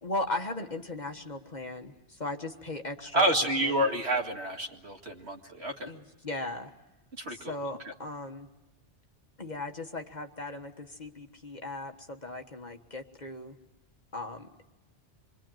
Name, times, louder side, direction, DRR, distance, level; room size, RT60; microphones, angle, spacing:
voice 1, 0.0-3.8 5.8-6.7 7.3-8.5 9.4-13.6 14.1-14.5, left 2 dB, 40° left, 5 dB, 1.5 m, -37 dB
voice 2, 3.1-5.9 7.2-7.5, right 1 dB, 65° right, 2 dB, 2.5 m, -28 dB
26.5 x 22.5 x 9.1 m, 1.0 s
omnidirectional pair, 1.2 m